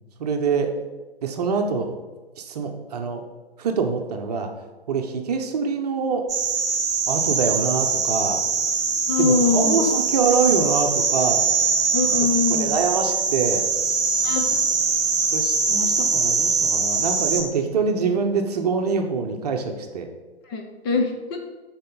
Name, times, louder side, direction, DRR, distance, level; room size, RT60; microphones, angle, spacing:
voice 1, 0.2-0.7 1.2-1.9 2.4-3.2 3.6-4.5 4.9-6.3 7.1-8.4 9.2-11.4 12.0-13.6 15.3-20.1, right 5 dB, 40° right, 4 dB, 0.9 m, -25 dB
sound 1, 6.3-17.4, right 4 dB, 10° right, 1.2 m, -22 dB
voice 2, 9.1-9.8 11.9-12.8 14.2-14.6 20.5-21.4, left 4 dB, 25° left, 2 dB, 0.8 m, -23 dB
12.0 x 4.4 x 4.0 m, 1.3 s
figure-of-eight pair, 125°, 31 cm